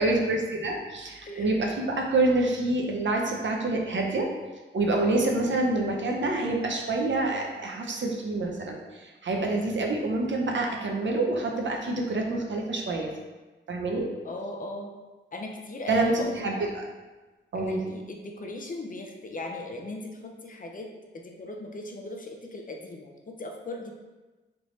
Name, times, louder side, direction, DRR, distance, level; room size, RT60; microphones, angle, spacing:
voice 1, 0.0-4.3 4.7-13.1 13.7-14.1 15.9-16.8 17.5-17.8, right 2 dB, 65° right, 1 dB, 0.6 m, -27 dB
voice 2, 1.3-1.6 5.4-5.7 9.4-9.6 14.2-14.9 15.3-16.6 17.7-20.9 21.1-23.9, left 2 dB, 40° left, 2 dB, 0.5 m, -38 dB
3.8 x 3.4 x 3.1 m, 1.2 s
wide cardioid pair, 145°, 20 cm